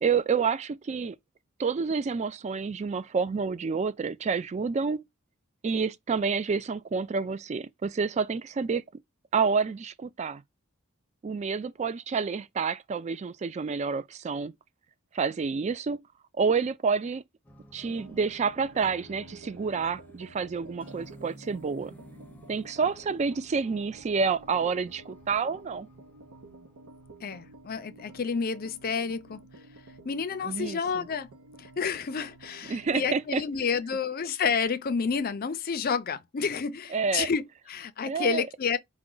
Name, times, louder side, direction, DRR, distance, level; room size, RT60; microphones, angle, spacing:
voice 1, 0.0-1.2 1.6-5.0 5.6-9.0 9.3-10.4 11.2-14.5 15.1-16.0 16.4-17.2 17.7-21.9 22.5-25.9 30.5-31.0 32.7-33.4 36.9-37.3 38.1-38.4, right 5 dB, 30° right, 0.3 m, -29 dB
sound 1, 17.4-27.7, equal, 5° left, 0.7 m, -53 dB
sound 2, 17.9-33.3, right 2 dB, 85° right, 0.7 m, -51 dB
voice 2, 27.2-29.4 30.0-31.3 31.6-38.8, left 5 dB, 45° left, 0.5 m, -30 dB
4.8 x 2.1 x 3.8 m
head